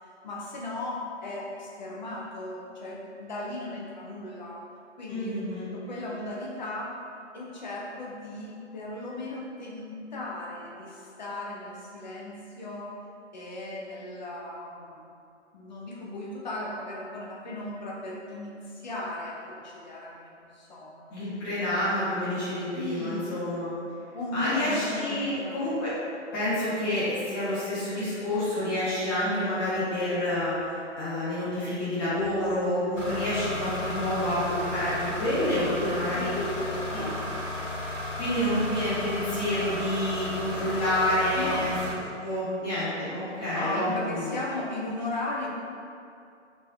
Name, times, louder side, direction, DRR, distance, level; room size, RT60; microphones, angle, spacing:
voice 1, 0.2-4.6 5.0-5.3 5.7-7.0 7.3-12.9 13.3-15.1 15.5-21.1 22.7-23.4 24.1-25.6 36.1-37.5 41.3-41.7 43.5-45.5, left 2 dB, 40° left, -4 dB, 0.6 m, -36 dB
voice 2, 5.1-5.7 21.1-23.7 24.3-25.9 26.3-36.3 36.9-37.0 38.2-41.7 42.2-44.3, left 1 dB, 20° left, -11 dB, 1.0 m, -28 dB
sound 1, 33.0-41.9, left 1 dB, 90° left, 0.9 m, -34 dB
3.2 x 2.7 x 3.3 m, 2.5 s
figure-of-eight pair, 135°, 36 cm